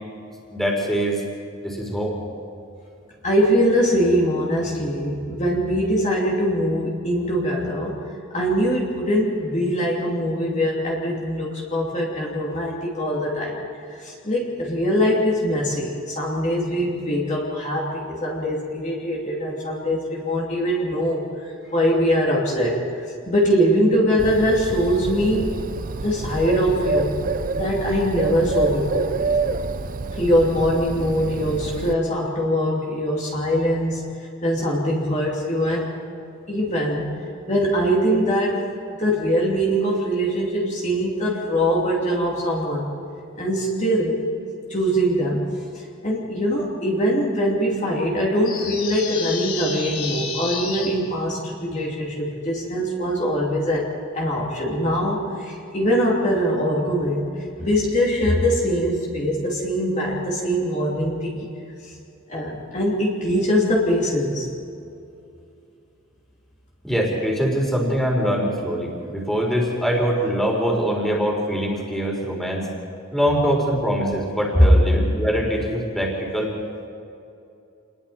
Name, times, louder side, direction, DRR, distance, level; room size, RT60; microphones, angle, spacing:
voice 1, 0.5-1.2 1.6-2.2 66.8-72.7 73.1-76.5, equal, ahead, -2 dB, 3.9 m, -23 dB
voice 2, 3.2-8.0 8.3-13.6 13.9-25.7 26.0-27.1 27.5-29.1 30.1-35.9 36.5-37.1 37.5-38.6 39.0-42.8 43.4-44.2 44.7-53.9 54.1-61.5 62.3-64.5, equal, 35° left, -4 dB, 3.0 m, -22 dB
Bird, 24.2-31.9, right 3 dB, 40° right, 0.6 m, -27 dB
sound 1, 48.4-50.9, left 5 dB, 85° left, 3.6 m, -30 dB
29.0 x 21.0 x 4.4 m, 2.6 s
head